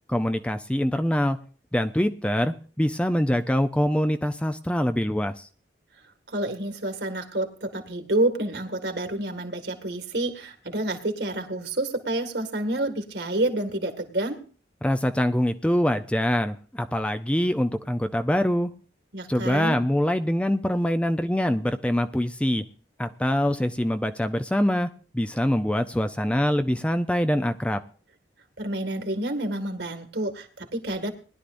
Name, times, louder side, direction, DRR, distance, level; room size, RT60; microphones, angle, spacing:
voice 1, 0.1-1.4 1.7-5.3 14.8-18.7 19.3-22.6 23.0-24.9 25.1-27.8, equal, 5° left, 9 dB, 0.5 m, -24 dB
voice 2, 6.3-14.4 19.1-19.8 28.6-31.1, right 1 dB, 70° right, 6 dB, 2.0 m, -28 dB
20.5 x 11.5 x 2.6 m, 0.39 s
head